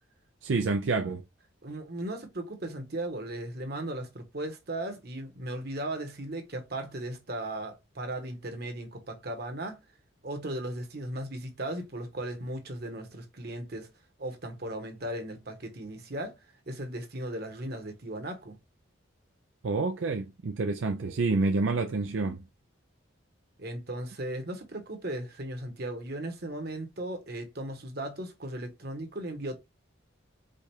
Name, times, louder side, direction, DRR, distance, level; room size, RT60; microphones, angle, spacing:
voice 1, 0.4-1.2 19.6-22.4, right 3 dB, 70° right, 0.5 m, -28 dB
voice 2, 1.6-9.8 10.2-13.9 14.2-16.3 16.7-18.5 23.6-29.6, right 1 dB, 50° right, 1.2 m, -37 dB
5.0 x 2.4 x 4.4 m
head